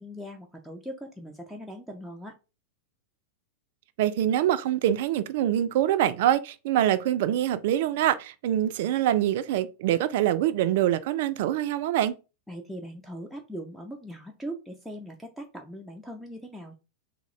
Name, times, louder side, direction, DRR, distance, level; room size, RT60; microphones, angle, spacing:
voice 1, 0.0-2.4 12.5-16.7, equal, ahead, 0.5 m, -40 dB
voice 2, 4.0-12.1, right 12 dB, 60° right, 0.3 m, -25 dB
3.6 x 2.0 x 3.1 m
hypercardioid pair, 100°, 0 cm